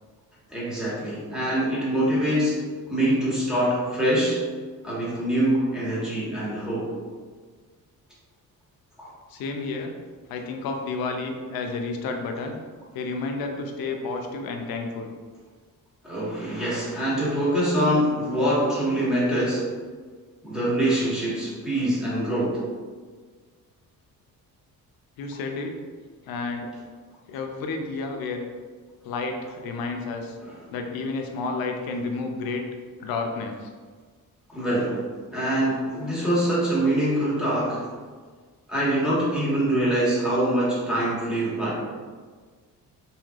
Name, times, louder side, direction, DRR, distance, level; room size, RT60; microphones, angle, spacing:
voice 1, 0.5-2.6 2.9-4.4 4.8-6.9 9.0-9.1 16.0-19.6 20.4-22.6 30.4-30.6 34.5-35.0 35.3-37.9 38.7-41.8, right 1 dB, ahead, -8 dB, 1.1 m, -24 dB
voice 2, 9.3-9.9 10.3-12.6 12.9-15.1 25.2-25.7 26.2-26.7 27.3-28.4 29.0-30.4 30.7-32.6 33.0-33.7, left 3 dB, 90° left, 3 dB, 0.5 m, -31 dB
3.1 x 2.7 x 2.4 m, 1.5 s
cardioid pair, 105°, 35 cm